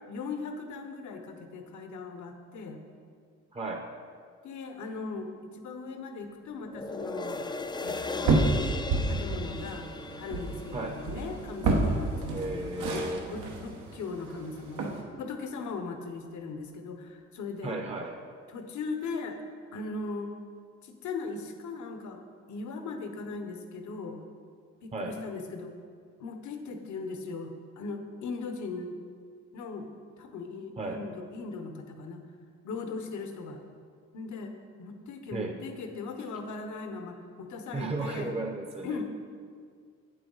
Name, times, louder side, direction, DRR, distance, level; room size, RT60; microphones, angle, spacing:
voice 1, 0.0-2.8 4.4-7.4 7.8-8.6 9.1-9.9 10.2-14.9 15.2-17.8 18.5-19.4 19.7-20.4 20.8-22.2 22.5-24.2 24.8-25.7 26.2-29.0 29.5-29.9 30.2-32.2 32.6-33.6 34.1-38.3 38.8-39.1, left 4 dB, 75° left, 6 dB, 1.0 m, -38 dB
voice 2, 3.5-3.9 10.7-11.0 12.3-13.2 17.6-18.2 24.9-25.1 30.8-31.0 35.3-35.5 37.7-39.1, right 2 dB, 20° right, 3 dB, 0.7 m, -34 dB
sound 1, 6.7-13.2 13.7-13.8, left 3 dB, 15° left, 0.4 m, -39 dB
sound 2, 7.9-15.0, right 3 dB, 85° right, 1.1 m, -30 dB
8.3 x 7.7 x 4.0 m, 2.1 s
cardioid pair, 90°, 30 cm